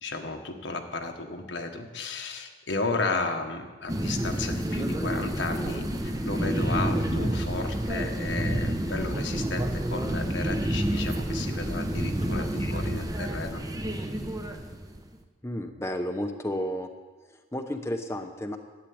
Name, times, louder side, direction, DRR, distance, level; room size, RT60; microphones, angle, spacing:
voice 1, 0.0-13.6, left 3 dB, 80° left, 4 dB, 1.5 m, -33 dB
sound 1, 3.9-15.2, right 1 dB, 20° right, 0.9 m, -29 dB
voice 2, 15.4-16.9 17.3-18.6, equal, 15° left, 4 dB, 0.8 m, -32 dB
12.0 x 9.1 x 8.5 m, 1.3 s
head